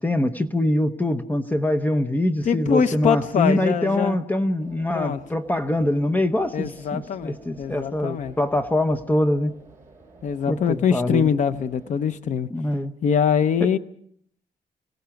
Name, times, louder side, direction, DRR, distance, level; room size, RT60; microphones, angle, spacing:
voice 1, 0.0-9.5 10.5-11.3 12.5-12.9, left 1 dB, 10° left, 0.8 m, -24 dB
voice 2, 2.4-4.2 4.9-5.2 6.5-8.3 10.2-12.5 13.0-13.8, left 7 dB, 55° left, 0.8 m, -23 dB
sound 1, 4.6-12.1, right 3 dB, 15° right, 7.2 m, -50 dB
26.5 x 17.0 x 5.8 m
wide cardioid pair, 165°, 15 cm